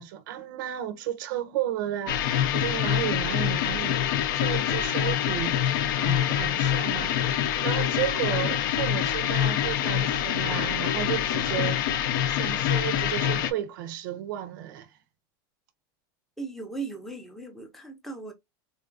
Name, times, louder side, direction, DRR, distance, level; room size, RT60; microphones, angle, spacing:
voice 1, 0.0-15.0, right 12 dB, 70° right, 0.5 m, -33 dB
sound 1, 2.1-13.5, left 10 dB, 70° left, 0.5 m, -25 dB
voice 2, 16.4-18.3, right 4 dB, ahead, 0.5 m, -37 dB
3.6 x 2.3 x 2.5 m
supercardioid pair, 165°, 11 cm